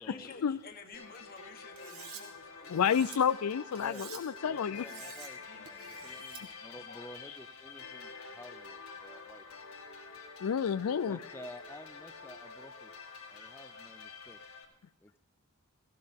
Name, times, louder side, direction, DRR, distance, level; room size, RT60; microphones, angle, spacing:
voice 1, 0.0-3.0 4.5-5.9 6.7-7.2, left 4 dB, 45° left, 6 dB, 1.5 m, -53 dB
sound 1, 0.9-14.6, left 4 dB, 70° left, 2.0 m, -48 dB
Cutlery silverware, 1.8-2.2 2.7-3.2 3.7-4.2 4.7-5.3 5.7-6.4, right 8 dB, 80° right, 1.9 m, -49 dB
voice 2, 2.7-4.9 10.4-11.2, left 7 dB, 90° left, 15 dB, 0.4 m, -30 dB
voice 3, 3.8-9.4 11.0-12.9 13.3-14.4 15.0-15.2, left 1 dB, 10° left, 8 dB, 0.5 m, -51 dB
17.0 x 16.0 x 3.6 m, 0.86 s
head